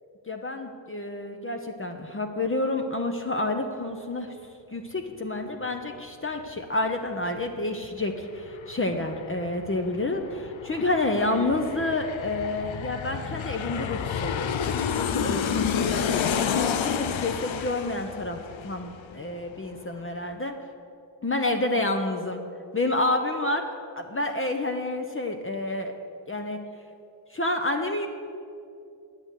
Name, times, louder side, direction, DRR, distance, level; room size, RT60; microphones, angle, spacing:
voice 1, 0.3-4.3 4.7-16.1 16.6-18.4 18.6-20.5 21.2-22.4 22.7-23.7 24.0-25.9 26.3-26.6 27.3-28.1, left 2 dB, 30° left, 4 dB, 0.8 m, -29 dB
Aircraft, 7.8-7.9 8.2-19.5 19.8-19.9, left 7 dB, 90° left, 0.7 m, -30 dB
10.5 x 7.8 x 8.2 m, 2.6 s
wide cardioid pair, 100°, 45 cm